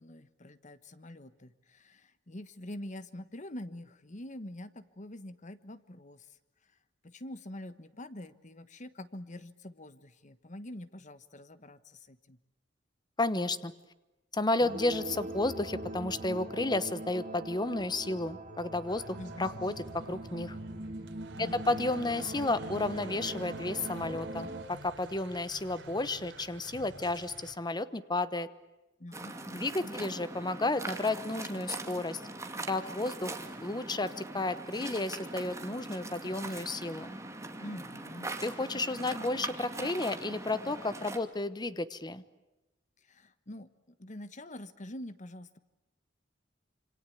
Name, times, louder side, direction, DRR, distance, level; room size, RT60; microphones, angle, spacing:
voice 1, 0.0-6.3 7.0-12.4 19.2-19.5 21.4-21.6 29.0-30.0 37.6-38.3 43.0-45.6, left 1 dB, 40° left, 13 dB, 1.3 m, -45 dB
voice 2, 13.2-13.7 14.3-20.6 21.4-28.5 29.5-32.2 32.7-33.3 33.6-37.2 38.4-42.2, left 2 dB, 25° left, 14 dB, 1.1 m, -32 dB
sound 1, 14.6-24.6, right 1 dB, 40° right, 3.1 m, -42 dB
sound 2, 18.9-27.5, right 2 dB, 80° right, 3.5 m, -50 dB
Waves surf, 29.1-41.2, right 2 dB, 15° right, 2.5 m, -42 dB
27.5 x 26.0 x 8.5 m, 1.0 s
head